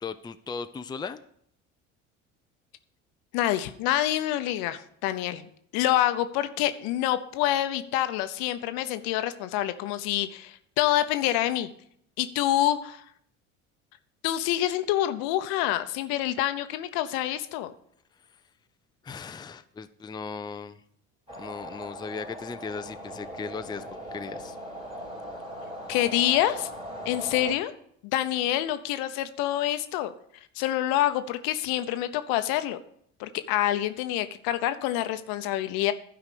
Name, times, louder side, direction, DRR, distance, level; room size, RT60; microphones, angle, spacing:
voice 1, 0.0-1.2 19.0-20.8 21.3-23.8 24.1-24.6, left 5 dB, 10° left, 10 dB, 0.5 m, -37 dB
voice 2, 3.3-11.7 12.2-13.0 14.2-17.7 25.9-26.7 27.0-27.7 28.1-30.1 30.6-32.8 33.2-35.9, left 13 dB, 65° left, 11 dB, 0.9 m, -27 dB
sound 1, 21.3-27.5, equal, 15° right, 2.7 m, -39 dB
12.0 x 4.9 x 6.8 m, 0.68 s
hypercardioid pair, 65°, 38 cm